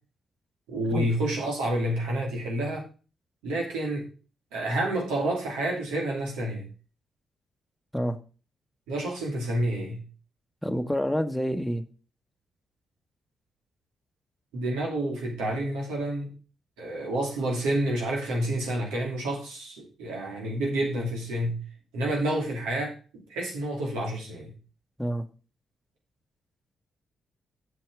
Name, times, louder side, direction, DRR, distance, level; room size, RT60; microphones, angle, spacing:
voice 1, 0.7-2.9 3.4-4.0 4.5-6.7 8.9-10.0 14.5-16.3 16.8-21.6 21.9-24.5, right 1 dB, 80° right, -1 dB, 2.6 m, -29 dB
voice 2, 10.6-11.8 25.0-25.2, equal, 5° left, 7 dB, 1.2 m, -28 dB
7.6 x 6.5 x 4.8 m, 0.35 s
hypercardioid pair, 45°, 0 cm